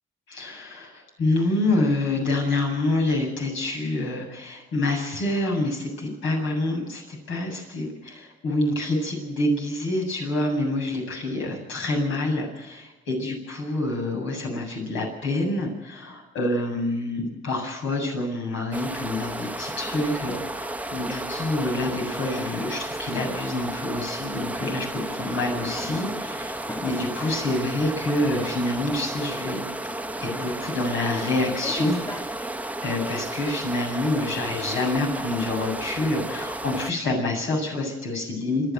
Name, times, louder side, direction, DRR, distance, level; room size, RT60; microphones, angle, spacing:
voice 1, 0.3-29.9 30.2-32.0 32.3-32.5 32.8-38.7, left 2 dB, 80° left, 2 dB, 7.8 m, -27 dB
sound 1, 18.7-36.9, right 1 dB, 5° right, 0.9 m, -33 dB
sound 2, 24.3-32.2, left 1 dB, 15° left, 2.6 m, -40 dB
27.5 x 10.5 x 9.5 m, 1.0 s
cardioid pair, 90°, 20 cm